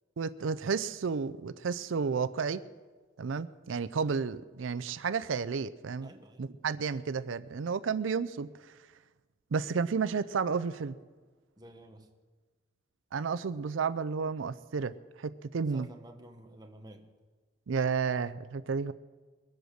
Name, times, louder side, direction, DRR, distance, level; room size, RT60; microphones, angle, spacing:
voice 1, 0.2-2.6 3.2-6.1 6.4-8.8 9.5-11.0 13.1-15.9 17.7-18.9, right 5 dB, 90° right, 13 dB, 0.5 m, -32 dB
voice 2, 6.0-6.4 11.6-12.1 15.7-17.1, right 1 dB, 20° right, 4 dB, 1.3 m, -51 dB
22.0 x 8.0 x 6.4 m, 1.4 s
head